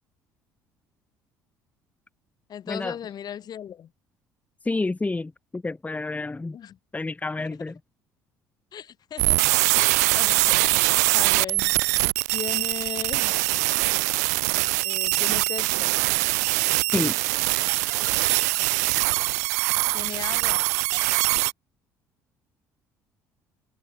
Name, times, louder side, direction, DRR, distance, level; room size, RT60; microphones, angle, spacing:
voice 1, 2.5-3.9 6.5-6.8 7.4-7.6 8.7-9.4 9.7-11.8 12.3-13.4 14.8-15.9 19.9-20.7 21.4-21.5, left 9 dB, 50° left, 4.4 m, -37 dB
voice 2, 4.6-6.6 6.9-7.8 16.9-17.2, left 3 dB, 15° left, 1.5 m, -29 dB
sound 1, 9.2-21.5, right 24 dB, 75° right, 0.5 m, -23 dB
hypercardioid pair, 60°, 9 cm